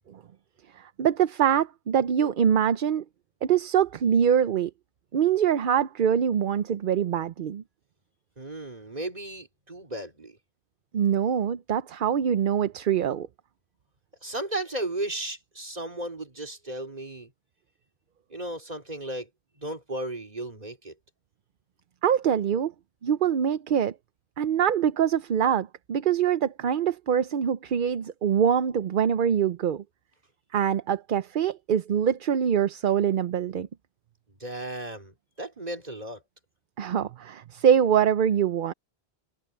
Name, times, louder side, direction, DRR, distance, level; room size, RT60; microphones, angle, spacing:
voice 1, 0.7-3.0 3.4-4.7 5.1-7.6 10.9-13.3 22.0-22.7 23.0-23.9 24.4-29.8 30.5-33.7 36.8-38.7, right 8 dB, 55° right, 0.7 m, -24 dB
voice 2, 8.4-10.4 14.2-17.3 18.3-19.3 19.6-20.9 34.3-36.2, right 1 dB, 40° right, 3.6 m, -35 dB
omnidirectional pair, 1.1 m